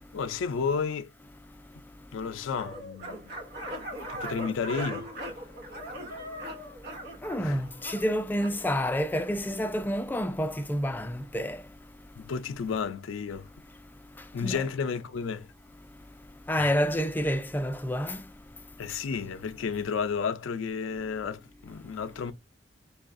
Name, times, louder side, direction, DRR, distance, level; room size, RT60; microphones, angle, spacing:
voice 1, 0.1-1.1 2.1-3.3 4.1-5.1 7.4-7.6 12.2-13.5 14.3-15.5 16.6-16.7 18.8-22.3, left 6 dB, 90° left, 0.4 m, -32 dB
sound 1, 2.5-8.6, right 1 dB, 55° right, 0.9 m, -39 dB
voice 2, 7.2-11.6 14.4-14.6 16.5-18.2, equal, 10° left, 0.4 m, -28 dB
5.3 x 2.3 x 2.5 m
head